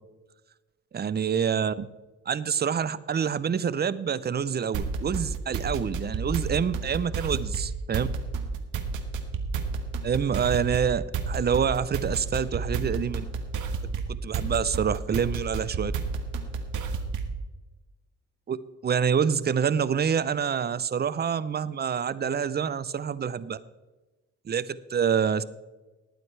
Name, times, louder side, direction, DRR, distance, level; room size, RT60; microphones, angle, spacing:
voice 1, 0.9-1.9 2.3-8.1 10.0-13.2 14.1-15.9 18.5-23.6 24.5-25.4, right 7 dB, 35° right, 16 dB, 0.6 m, -27 dB
sound 1, 4.7-17.4, right 4 dB, 80° right, 1.4 m, -31 dB
19.5 x 9.1 x 3.3 m, 1.2 s
cardioid pair, 90°, 30 cm